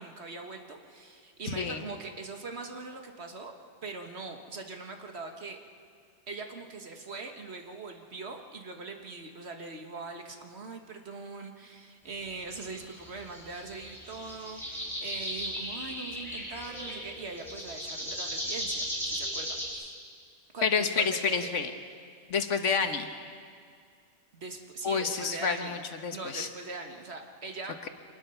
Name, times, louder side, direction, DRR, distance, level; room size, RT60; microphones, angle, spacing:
voice 1, 0.0-3.5 3.8-5.6 6.3-14.6 15.0-19.9 20.5-21.5 24.3-25.8 26.1-27.7, right 3 dB, 60° right, 4 dB, 1.8 m, -41 dB
sound 1, 12.4-19.7, equal, ahead, 7.8 m, -37 dB
voice 2, 20.6-21.7 22.3-23.1 24.8-26.5, left 5 dB, 85° left, 7 dB, 1.6 m, -29 dB
25.0 x 20.0 x 5.7 m, 2.2 s
omnidirectional pair, 1.2 m